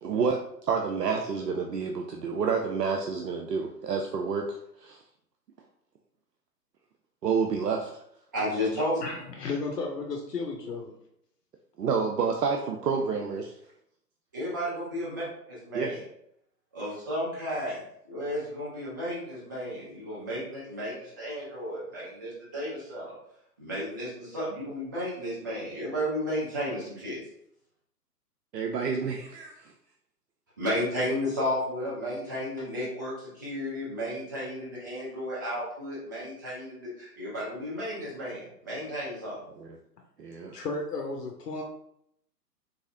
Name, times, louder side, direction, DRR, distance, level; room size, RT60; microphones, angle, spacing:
voice 1, 0.0-5.0 7.2-7.9 11.8-13.5 15.7-15.9 28.5-29.7 39.6-39.7 40.2-40.6, right 5 dB, 75° right, 2 dB, 0.6 m, -29 dB
voice 2, 8.3-9.0 14.3-16.0 16.7-17.8 18.0-23.1 23.6-27.2 30.6-39.4, equal, 15° right, -8 dB, 0.5 m, -33 dB
voice 3, 9.0-10.9 40.5-41.6, left 3 dB, 70° left, 0 dB, 0.7 m, -33 dB
3.9 x 2.7 x 2.6 m, 0.73 s
figure-of-eight pair, 130°, 49 cm